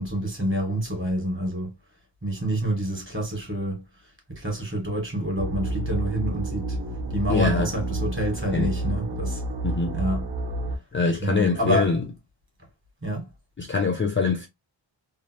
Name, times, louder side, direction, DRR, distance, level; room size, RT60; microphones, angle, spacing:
voice 1, 0.0-1.7 2.2-3.8 4.3-6.8 7.1-9.4 9.9-10.3 11.2-12.0 13.0-13.3, equal, 25° right, 1.7 m, -27 dB
sound 1, 5.4-10.8, right 2 dB, 70° right, 1.5 m, -29 dB
voice 2, 7.3-7.7 8.5-8.7 9.6-10.0 10.9-12.0 13.6-14.5, left 4 dB, 30° left, 0.5 m, -24 dB
3.3 x 2.3 x 2.9 m
wide cardioid pair, 150°, 44 cm